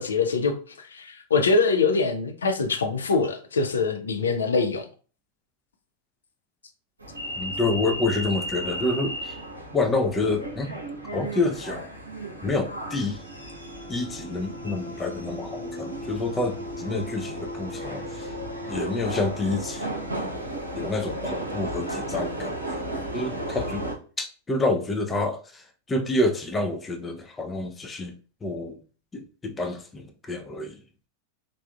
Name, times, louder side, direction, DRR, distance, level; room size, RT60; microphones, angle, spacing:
voice 1, 0.0-4.9, left 4 dB, 70° left, 0.5 m, -24 dB
sound 1, 7.0-23.9, right 1 dB, 80° right, 0.7 m, -34 dB
voice 2, 7.4-9.4 9.7-10.8 11.1-11.9 12.4-13.2 13.9-18.3 18.7-19.9 20.8-23.9 24.2-28.8 29.1-30.8, left 2 dB, 15° left, 0.4 m, -28 dB
3.4 x 2.5 x 2.2 m
figure-of-eight pair, 90°, 0 cm